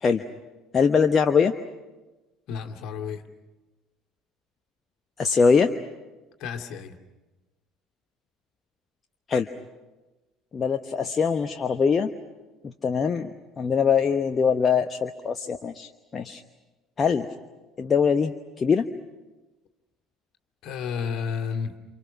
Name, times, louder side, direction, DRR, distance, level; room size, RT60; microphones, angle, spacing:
voice 1, 0.7-1.5 5.2-5.7 9.3-9.5 10.5-12.1 12.6-13.3 13.6-16.4 17.0-17.3 17.8-18.9, left 6 dB, 30° left, 7 dB, 1.0 m, -22 dB
voice 2, 2.5-3.2 6.4-7.0 20.6-21.7, left 6 dB, 55° left, 4 dB, 2.4 m, -31 dB
29.0 x 28.0 x 6.1 m, 1.1 s
figure-of-eight pair, 60°, 0 cm